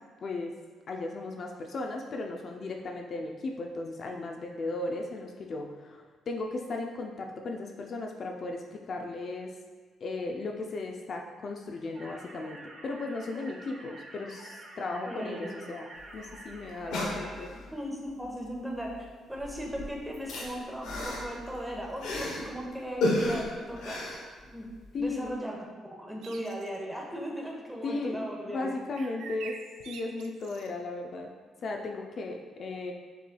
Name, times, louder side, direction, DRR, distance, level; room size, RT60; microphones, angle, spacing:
voice 1, 0.2-0.6 0.9-9.5 10.0-15.9 16.1-17.5 24.9-25.3 27.8-28.2 28.5-29.6 29.9-31.3 31.6-32.9, left 2 dB, 50° left, 2 dB, 0.4 m, -36 dB
sound 1, 11.9-17.5, right 2 dB, 55° right, 0.9 m, -48 dB
voice 2, 15.1-15.6 16.8-17.3 17.7-24.0 24.4-24.7 25.0-25.6 26.0-29.1, equal, 5° right, -1 dB, 0.9 m, -38 dB
sound 2, 16.0-16.1 16.3-16.4 16.7-17.7 18.8-19.1 19.3-22.5 23.0-24.9 25.2-25.3, left 1 dB, 85° left, 0.9 m, -33 dB
sound 3, 26.2-26.8 28.9-30.7, right 6 dB, 85° right, 0.3 m, -46 dB
6.7 x 3.2 x 2.2 m, 1.5 s
cardioid pair, 90°, 0 cm